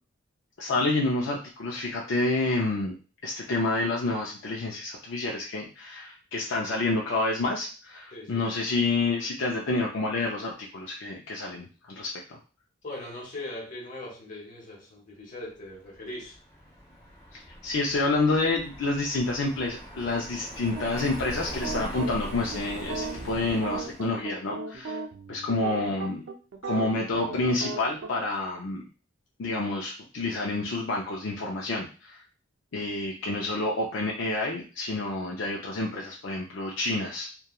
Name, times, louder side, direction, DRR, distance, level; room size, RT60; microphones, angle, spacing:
voice 1, 0.6-2.9 3.2-12.4 17.3-25.0 25.3-26.2 26.7-28.8 29.4-32.2 32.7-37.3, left 2 dB, 70° left, -2 dB, 0.5 m, -28 dB
voice 2, 8.1-8.4 12.8-16.3, left 1 dB, 40° left, -1 dB, 0.9 m, -40 dB
Car passing by, 15.7-24.2, equal, 15° left, 0.8 m, -42 dB
sound 1, 20.7-28.1, right 3 dB, 85° right, 0.5 m, -36 dB
2.9 x 2.2 x 2.3 m, 0.35 s
head